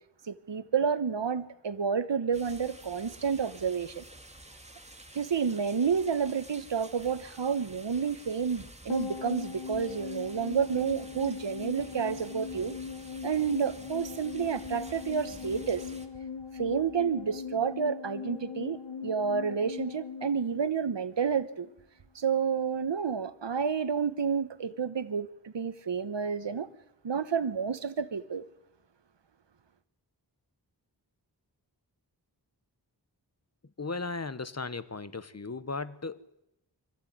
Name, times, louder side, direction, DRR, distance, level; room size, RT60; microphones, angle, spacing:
voice 1, 0.3-4.0 5.1-12.7 13.2-15.8 16.6-21.7 22.1-26.7 27.0-28.4, right 6 dB, 90° right, 1.2 m, -30 dB
sound 1, 2.3-16.1, right 1 dB, 15° right, 2.6 m, -50 dB
sound 2, 8.9-21.4 21.7-21.8, left 6 dB, 85° left, 1.3 m, -40 dB
voice 2, 33.8-36.4, left 3 dB, 40° left, 1.3 m, -36 dB
24.5 x 15.0 x 9.4 m
wide cardioid pair, 50°, 42 cm